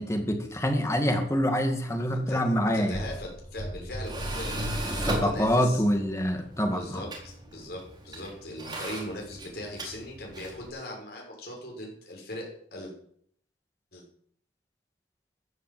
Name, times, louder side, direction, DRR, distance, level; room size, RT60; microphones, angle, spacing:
voice 1, 0.0-3.0 4.9-7.0, equal, 15° left, 5 dB, 2.3 m, -26 dB
voice 2, 2.0-4.6 4.9-5.8 6.7-12.9 13.9-14.0, left 1 dB, 55° left, -1 dB, 6.6 m, -40 dB
Tools, 2.7-10.7, right 1 dB, 25° right, 4.1 m, -36 dB
15.0 x 11.0 x 7.9 m, 0.64 s
head